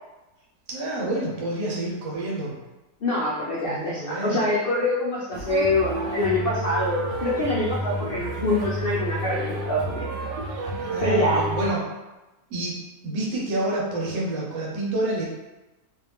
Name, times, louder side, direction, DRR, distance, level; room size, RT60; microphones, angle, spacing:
voice 1, 0.7-2.5 3.6-4.4 10.9-11.8 12.5-12.7 13.0-15.2, right 2 dB, 55° right, -5 dB, 1.3 m, -28 dB
voice 2, 3.0-10.1 11.0-11.5, left 1 dB, 85° left, -6 dB, 0.5 m, -25 dB
sound 1, 5.3-11.7, right 1 dB, 75° right, 1.2 m, -30 dB
3.9 x 2.5 x 3.4 m, 1.1 s
omnidirectional pair, 1.8 m